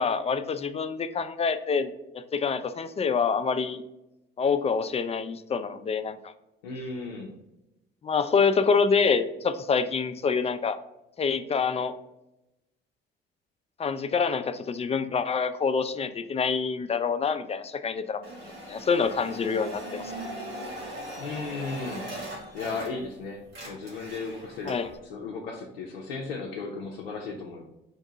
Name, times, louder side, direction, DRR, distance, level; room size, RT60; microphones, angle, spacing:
voice 1, 0.0-3.8 4.4-6.3 8.0-10.8 11.2-11.9 13.8-18.2 18.7-20.1 24.7-24.9, left 5 dB, 20° left, 11 dB, 0.3 m, -26 dB
voice 2, 6.6-7.3 21.2-22.1 22.5-27.6, left 4 dB, 85° left, 0 dB, 0.6 m, -35 dB
sound 1, 18.2-23.2 23.4-25.0, right 1 dB, 85° right, 1.2 m, -40 dB
3.6 x 2.7 x 4.6 m, 0.93 s
hypercardioid pair, 50°, 29 cm